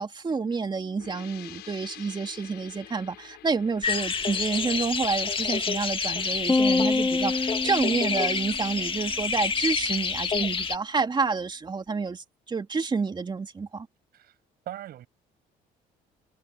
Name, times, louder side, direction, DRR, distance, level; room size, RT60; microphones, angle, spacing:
voice 1, 0.0-13.9, right 4 dB, 25° right, 2.7 m, -29 dB
sound 1, 1.0-6.5, left 16 dB, 80° left, 7.6 m, -48 dB
sound 2, 3.8-10.8, left 5 dB, 30° left, 1.8 m, -28 dB
sound 3, 6.5-8.9, left 3 dB, 15° left, 1.2 m, -26 dB
voice 2, 14.7-15.1, right 12 dB, 65° right, 7.4 m, -39 dB
cardioid pair, 110°, 17 cm